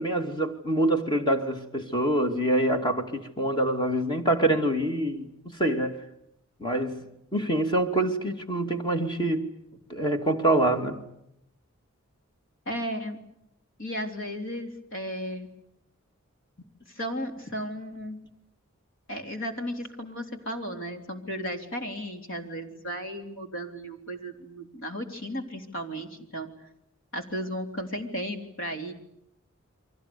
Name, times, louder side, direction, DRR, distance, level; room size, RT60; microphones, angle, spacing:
voice 1, 0.0-6.0 6.6-7.0 7.3-9.5 9.9-11.0, right 1 dB, 20° left, 2.6 m, -25 dB
voice 2, 12.7-13.2 13.8-15.5 16.9-18.3 19.1-26.5 27.1-28.9, equal, 65° left, 3.6 m, -34 dB
29.5 x 24.0 x 7.0 m
head